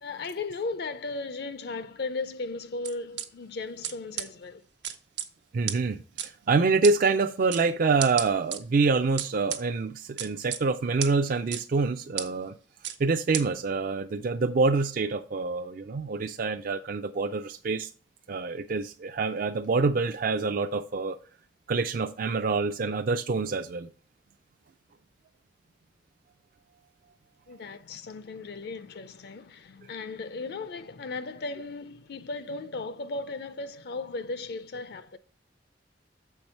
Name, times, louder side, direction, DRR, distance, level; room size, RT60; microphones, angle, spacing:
voice 1, 0.0-4.6 27.5-35.2, left 3 dB, 65° left, 0.5 m, -36 dB
sound 1, 2.8-3.2 3.8-3.9 4.2-4.3 4.8-5.3 5.7-5.8 6.2-6.3 6.8-6.9 7.5-7.6 8.0-8.6 9.2-9.6 10.2-10.6 11.0-11.1 11.5-11.6 12.2-12.3 12.8-13.0 13.3-13.4, right 10 dB, 80° right, 1.0 m, -31 dB
voice 2, 5.5-12.5 13.0-17.9 18.3-21.2 21.7-23.9, right 4 dB, 50° right, 0.4 m, -26 dB
7.1 x 4.6 x 5.4 m
head